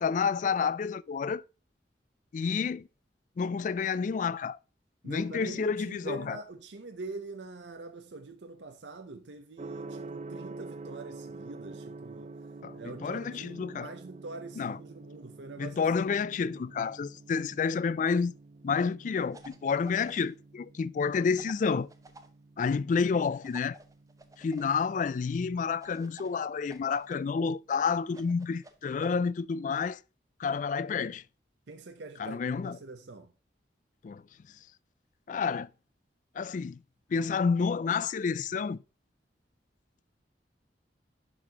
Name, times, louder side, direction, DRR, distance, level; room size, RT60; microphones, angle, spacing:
voice 1, 0.0-1.4 2.3-2.9 3.4-4.6 5.0-6.4 12.6-13.9 14.6-14.8 15.6-18.4 18.6-21.9 22.6-23.8 24.4-30.0 30.4-31.2 32.2-32.8 34.0-34.2 35.3-35.7 36.4-36.8 37.1-38.8, left 5 dB, 45° left, 0.3 m, -29 dB
voice 2, 5.0-12.3 12.7-15.8 31.7-33.3, right 3 dB, 80° right, 0.7 m, -44 dB
Gong, 9.6-27.4, right 3 dB, 40° right, 0.4 m, -48 dB
sound 1, 19.3-20.3 21.3-22.3 23.4-24.7 25.8-27.2 28.1-29.1, right 2 dB, 20° right, 0.8 m, -53 dB
11.0 x 4.0 x 2.8 m
head